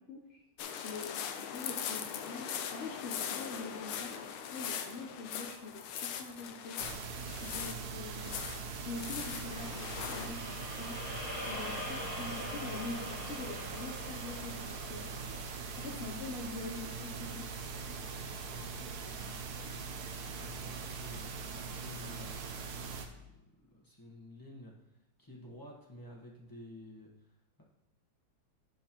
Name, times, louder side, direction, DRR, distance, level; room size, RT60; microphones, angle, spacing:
voice 1, 0.1-0.4 0.8-6.8 7.4-8.5 8.8-10.9 11.5-15.1 15.8-17.5, left 3 dB, 65° left, -1 dB, 0.6 m, -44 dB
sound 1, 0.6-10.3, left 8 dB, 90° left, 1.5 m, -40 dB
sound 2, 6.8-23.1, right 4 dB, 60° right, 1.1 m, -42 dB
sound 3, 9.6-17.8, left 1 dB, 45° left, 1.7 m, -45 dB
voice 2, 15.6-16.4 17.9-18.2 18.5-23.3 23.6-27.6, equal, 15° left, -3 dB, 0.9 m, -53 dB
9.3 x 6.6 x 3.0 m, 0.92 s
omnidirectional pair, 2.2 m